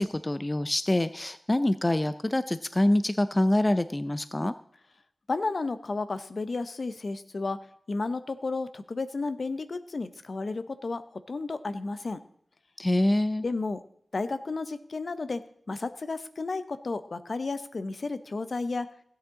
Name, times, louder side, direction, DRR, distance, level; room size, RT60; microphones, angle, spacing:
voice 1, 0.0-4.5 12.8-13.5, left 1 dB, 20° left, 13 dB, 0.4 m, -25 dB
voice 2, 5.3-7.6 7.9-12.2 13.4-13.8 14.1-18.9, left 3 dB, 60° left, 12 dB, 0.8 m, -32 dB
16.0 x 8.7 x 3.7 m, 0.68 s
wide cardioid pair, 90°, 0 cm